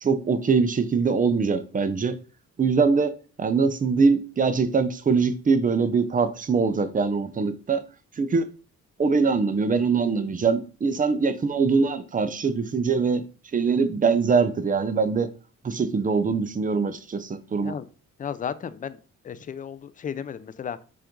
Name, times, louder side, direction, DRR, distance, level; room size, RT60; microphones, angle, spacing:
voice 1, 0.0-2.2 2.6-3.1 3.4-7.8 8.2-8.5 9.0-13.2 13.5-15.3 15.6-17.8, right 5 dB, 25° right, 0.6 m, -23 dB
voice 2, 18.2-19.0 19.2-20.8, left 7 dB, 25° left, 0.4 m, -34 dB
5.7 x 2.5 x 3.6 m
cardioid pair, 90°, 30 cm